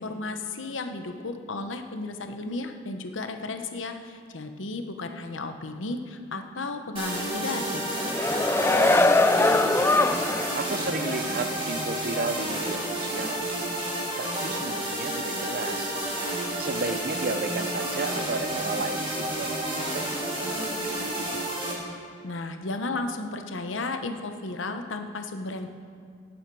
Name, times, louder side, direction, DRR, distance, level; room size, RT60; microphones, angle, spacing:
voice 1, 0.0-7.8 22.2-25.7, left 3 dB, 85° left, 6 dB, 1.0 m, -34 dB
sound 1, 7.0-21.7, right 1 dB, 30° right, 3.2 m, -30 dB
sound 2, 7.9-10.6 11.0-11.2, left 2 dB, 15° left, 0.3 m, -22 dB
voice 2, 8.7-9.8 10.5-13.4 14.2-15.9 16.6-19.5 19.9-21.4, right 3 dB, 50° right, 9 dB, 0.7 m, -34 dB
17.5 x 8.9 x 4.8 m, 2.2 s
head